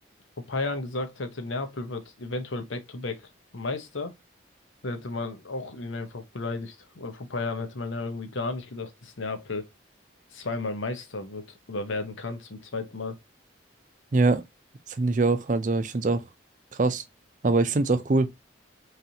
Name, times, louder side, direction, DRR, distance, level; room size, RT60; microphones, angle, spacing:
voice 1, 0.5-4.1 4.8-9.7 10.3-13.2, left 3 dB, 80° left, 0.9 m, -33 dB
voice 2, 14.1-14.4 14.9-16.2 16.7-17.0 17.4-18.3, right 3 dB, 40° right, 0.5 m, -23 dB
4.0 x 3.3 x 2.8 m
head